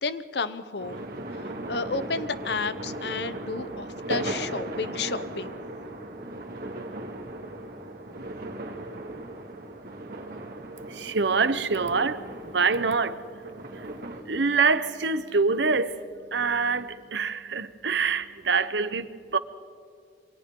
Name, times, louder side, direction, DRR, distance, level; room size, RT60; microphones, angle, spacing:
voice 1, 0.0-1.1 1.3-5.5, left 4 dB, 65° left, 0.8 m, -32 dB
sound 1, 0.8-14.2, right 1 dB, 50° right, 2.4 m, -37 dB
voice 2, 10.9-13.4 13.7-13.9 14.2-16.0 16.3-19.4, right 4 dB, 75° right, 1.0 m, -25 dB
27.5 x 24.5 x 3.8 m
head